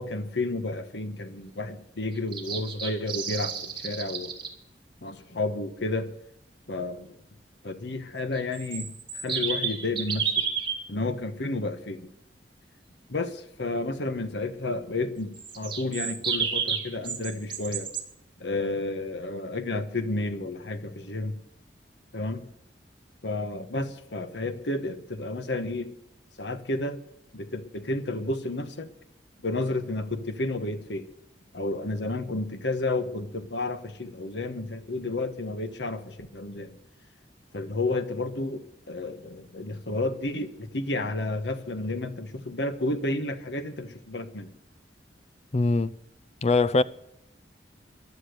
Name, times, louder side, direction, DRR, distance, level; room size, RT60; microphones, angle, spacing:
voice 1, 0.0-4.3 5.0-6.1 6.7-7.2 7.6-10.4 10.9-12.1 13.1-17.9 18.4-21.4 22.1-22.5 23.2-25.9 26.4-27.0 27.3-28.9 29.4-31.1 31.5-36.8 37.5-44.5, left 2 dB, 80° left, 1.4 m, -31 dB
sound 1, 2.2-4.5 8.3-10.8 15.3-18.0, right 6 dB, 30° right, 2.6 m, -31 dB
voice 2, 45.5-45.9 46.4-46.8, left 3 dB, 40° left, 0.5 m, -22 dB
14.5 x 11.0 x 6.7 m
head